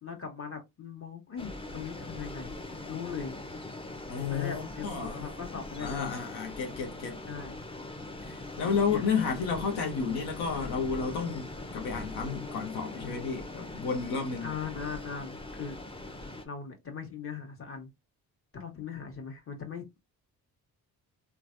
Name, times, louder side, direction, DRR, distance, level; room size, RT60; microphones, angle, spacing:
voice 1, 0.0-3.4 4.3-6.1 7.2-7.6 8.9-9.0 14.4-15.8 16.4-17.9 18.5-20.0, left 6 dB, 35° left, 1.2 m, -40 dB
sound 1, 1.4-16.5, left 2 dB, 15° left, 0.6 m, -42 dB
voice 2, 4.1-5.3 5.8-7.2 8.2-14.5, left 5 dB, 85° left, 0.8 m, -32 dB
3.2 x 2.2 x 2.5 m
supercardioid pair, 65°, 39 cm